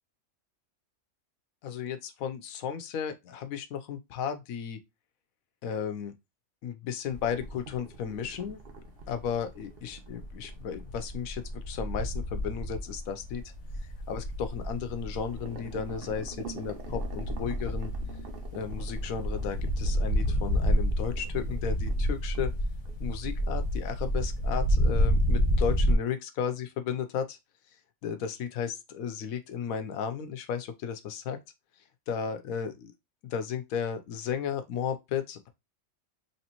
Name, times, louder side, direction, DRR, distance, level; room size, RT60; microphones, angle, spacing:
voice 1, 1.6-4.8 5.6-6.1 6.6-8.6 9.1-13.4 14.1-17.9 18.5-22.5 23.0-27.4 28.0-31.4 32.1-32.9 33.2-35.5, left 7 dB, 85° left, 1.1 m, -34 dB
sound 1, 7.1-7.7 8.1-9.5 9.9-26.0, equal, 30° left, 1.1 m, -29 dB
sound 2, 7.2-11.8 15.2-22.1 22.3-22.5 22.9-23.0 23.4-23.5, right 5 dB, 50° right, 0.8 m, -48 dB
4.3 x 3.0 x 2.9 m
omnidirectional pair, 1.4 m